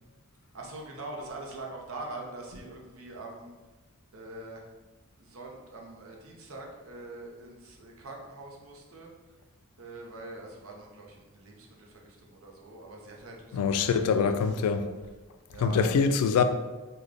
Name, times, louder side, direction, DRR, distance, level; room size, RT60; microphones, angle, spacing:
voice 1, 0.5-3.5 4.1-4.6 5.2-9.1 9.8-14.7 15.5-15.9, right 2 dB, 65° right, 0.6 m, -43 dB
voice 2, 13.5-14.9 15.6-16.4, left 5 dB, 80° left, 0.3 m, -24 dB
3.7 x 2.2 x 3.4 m
head